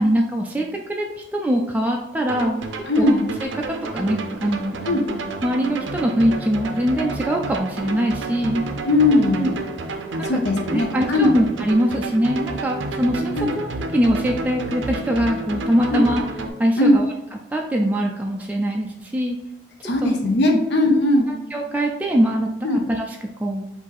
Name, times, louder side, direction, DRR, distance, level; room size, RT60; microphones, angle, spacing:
voice 1, 0.0-3.2 3.5-4.8 5.4-8.7 9.4-9.5 10.3-10.4 10.7-16.2 16.6-17.1 17.5-19.4 20.0-20.1 21.5-23.7, equal, 10° right, 0 dB, 0.3 m, -22 dB
sound 1, 2.3-16.5, right 2 dB, 90° right, 0.6 m, -30 dB
voice 2, 2.9-3.3 4.9-5.1 8.9-9.5 10.2-11.3 13.4-13.5 15.9-16.0 16.8-17.0 19.8-21.3 22.6-22.8, left 2 dB, 65° left, 3 dB, 0.5 m, -18 dB
4.9 x 2.6 x 4.0 m, 0.91 s
head